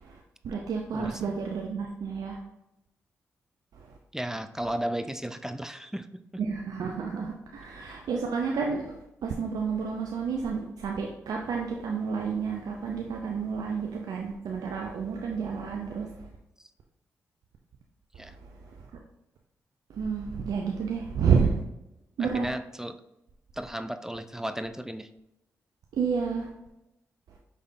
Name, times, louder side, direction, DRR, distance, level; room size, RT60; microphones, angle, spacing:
voice 1, 0.0-2.4 3.8-3.9 6.4-16.3 18.4-18.9 19.9-21.6 22.2-22.5 25.9-26.5, right 6 dB, 75° right, 0 dB, 0.5 m, -30 dB
voice 2, 0.9-1.4 4.1-6.4 16.6-16.7 18.2-18.4 22.2-23.0 23.5-25.1, right 1 dB, 5° right, 10 dB, 0.3 m, -35 dB
5.2 x 3.3 x 2.6 m, 0.90 s
supercardioid pair, 40°, 7 cm